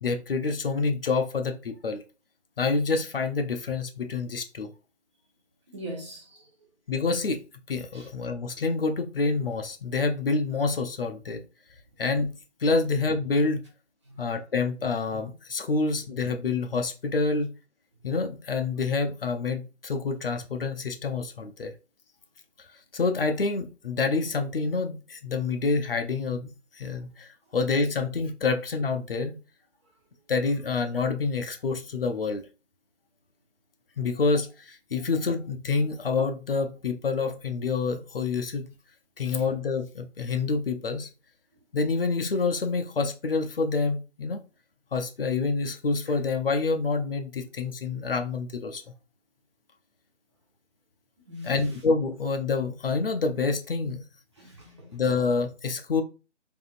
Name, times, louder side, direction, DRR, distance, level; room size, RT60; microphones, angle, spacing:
voice 1, 0.0-2.0 2.6-4.7 6.9-7.4 7.7-11.4 12.0-12.3 12.6-13.6 14.2-17.5 18.0-21.7 22.9-26.5 26.8-29.4 30.3-32.4 34.0-38.7 39.2-41.1 41.7-44.4 44.9-48.8 51.4-54.0 54.9-56.0, left 4 dB, 50° left, 0.5 m, -27 dB
voice 2, 5.7-6.5 7.9-8.1 14.1-14.3 51.3-51.6 54.4-55.0, equal, 25° right, 0.8 m, -41 dB
3.5 x 2.5 x 2.4 m
figure-of-eight pair, 165°, 36 cm